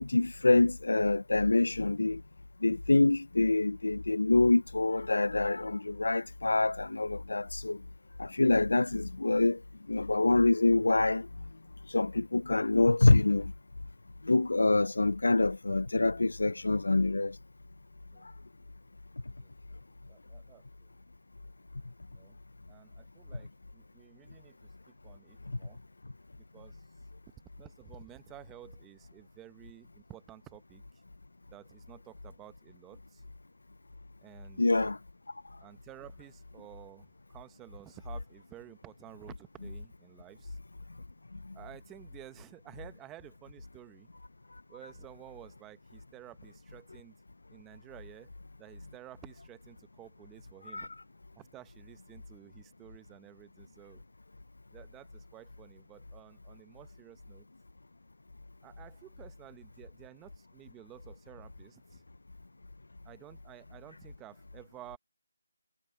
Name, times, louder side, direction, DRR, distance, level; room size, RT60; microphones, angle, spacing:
voice 1, 0.0-2.2 2.6-7.8 8.2-9.6 9.9-11.3 11.9-13.5 14.2-17.4 25.5-25.6 34.6-35.0 41.4-41.5 50.7-50.9, left 2 dB, 80° left, 0.5 m, -26 dB
voice 2, 20.1-20.6 22.1-22.4 22.7-24.6 24.9-25.8 26.4-26.8 27.6-30.8 31.5-33.2 34.2-34.6 35.6-40.6 41.5-44.1 44.7-47.2 47.5-48.3 48.6-50.9 51.4-54.0 54.7-57.5 58.6-62.0 63.0-65.0, right 15 dB, 10° right, 0.8 m, -53 dB
figure-of-eight pair, 170°, 0 cm